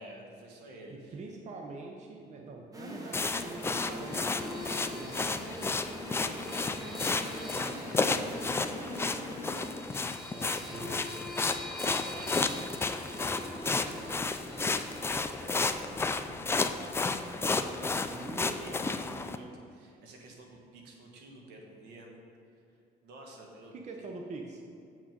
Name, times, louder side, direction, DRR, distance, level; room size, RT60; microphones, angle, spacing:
voice 1, 0.0-1.2 6.0-6.7 7.1-10.9 11.7-22.2 22.5-22.6 23.0-24.1, right 1 dB, 80° right, 1 dB, 1.5 m, -51 dB
voice 2, 0.9-5.7 7.7-8.3 10.7-11.1 18.1-19.2 23.7-24.6, right 3 dB, 45° right, 1 dB, 0.8 m, -45 dB
sound 1, 2.7-9.7, equal, 20° right, 1.2 m, -43 dB
sound 2, 3.1-19.4, left 3 dB, 15° left, 0.4 m, -32 dB
sound 3, 3.5-16.7, left 2 dB, ahead, 1.3 m, -46 dB
7.4 x 6.2 x 5.3 m, 2.5 s
cardioid pair, 110°, 17 cm